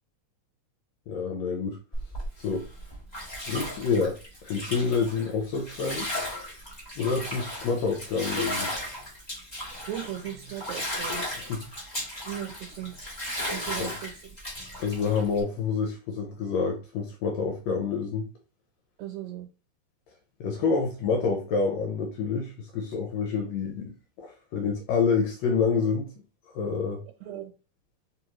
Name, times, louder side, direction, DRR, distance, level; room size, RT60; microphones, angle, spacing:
voice 1, 1.1-1.8 2.4-2.6 3.5-6.1 7.0-8.7 11.5-11.6 13.8-13.9 14.8-18.2 20.4-23.9 24.2-26.1 26.5-27.0, left 5 dB, 75° left, 1.8 m, -27 dB
Bathtub (filling or washing), 1.9-15.4, left 1 dB, 30° left, 0.7 m, -36 dB
voice 2, 9.8-11.2 12.3-13.0 13.5-14.1 19.0-19.5 27.2-27.5, right 12 dB, 75° right, 2.0 m, -37 dB
4.2 x 3.4 x 3.0 m
omnidirectional pair, 3.3 m